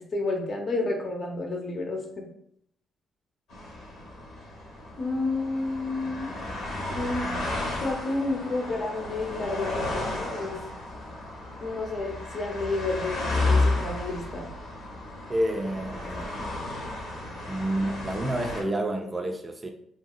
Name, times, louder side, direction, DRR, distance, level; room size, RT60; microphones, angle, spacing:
voice 1, 0.1-2.3 5.0-6.3 6.9-7.3 7.8-10.6 11.6-14.5, left 2 dB, 45° left, 1 dB, 0.7 m, -30 dB
sound 1, 3.5-18.6, left 2 dB, 80° left, 1.1 m, -32 dB
voice 2, 15.3-16.3 17.5-19.7, right 1 dB, 25° right, 3 dB, 0.3 m, -29 dB
2.9 x 2.6 x 2.3 m, 0.70 s
cardioid pair, 90°, 0 cm